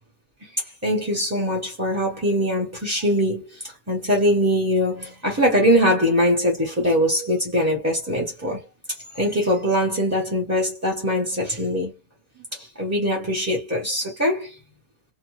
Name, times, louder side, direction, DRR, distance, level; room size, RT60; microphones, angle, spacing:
voice 1, 0.8-8.7 9.1-11.9 12.5-14.6, equal, 15° right, 0.7 m, -22 dB
2.7 x 2.0 x 3.0 m
omnidirectional pair, 1.5 m